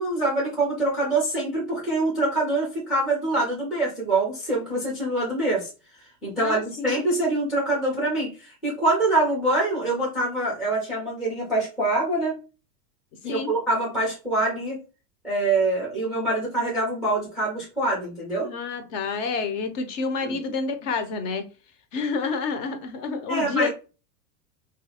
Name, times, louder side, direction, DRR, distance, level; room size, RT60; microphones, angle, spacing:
voice 1, 0.0-5.7 6.2-12.4 13.2-14.8 15.2-18.5 20.2-20.3 23.3-23.7, right 2 dB, ahead, 0.3 m, -25 dB
voice 2, 6.4-6.9 13.3-13.5 18.4-21.4 21.9-23.7, left 4 dB, 50° left, 0.7 m, -28 dB
2.7 x 2.4 x 2.8 m
hypercardioid pair, 115°, 50 cm